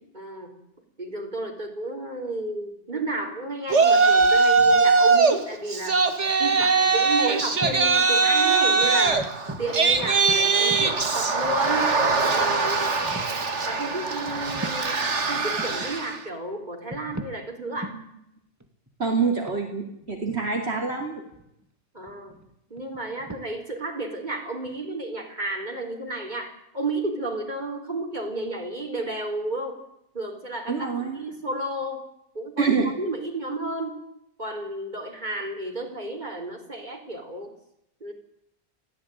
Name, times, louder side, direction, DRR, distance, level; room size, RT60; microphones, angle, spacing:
voice 1, 0.1-0.5 1.0-6.0 6.4-9.3 9.6-11.9 12.3-13.0 13.6-15.0 15.3-17.9 21.9-22.4 22.7-29.8 30.1-32.1 32.3-34.0 34.4-37.5 38.0-38.1, right 2 dB, 40° right, 3 dB, 4.4 m, -32 dB
sound 1, 3.7-4.5 6.3-6.4 6.6-6.8 7.4-8.0 8.3-8.4 8.8-12.0 12.5-12.6 13.0-13.4 14.3-14.9 15.4-15.9 16.6-17.4 17.8-18.0 18.6-21.6 22.0-23.4, right 1 dB, 15° right, 2.1 m, -40 dB
Yell, 3.7-5.4 5.7-16.1, right 4 dB, 85° right, 2.3 m, -21 dB
voice 2, 19.0-21.2 30.7-31.2 32.6-32.9, right 5 dB, 65° right, 2 dB, 3.2 m, -26 dB
21.0 x 16.0 x 9.4 m, 0.79 s
omnidirectional pair, 1.2 m